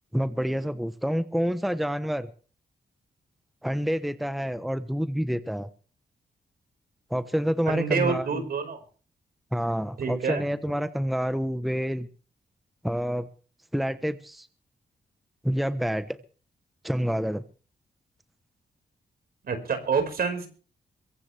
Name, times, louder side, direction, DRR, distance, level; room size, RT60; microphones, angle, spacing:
voice 1, 0.1-2.3 3.6-5.7 7.1-8.4 9.5-12.1 12.8-13.3 13.7-14.5 15.4-16.2 16.8-17.4, equal, ahead, 11 dB, 1.0 m, -28 dB
voice 2, 7.7-8.8 10.0-10.4 19.4-20.5, right 5 dB, 65° right, 6 dB, 5.1 m, -27 dB
23.0 x 16.0 x 3.4 m, 0.41 s
cardioid pair, 70°, 17 cm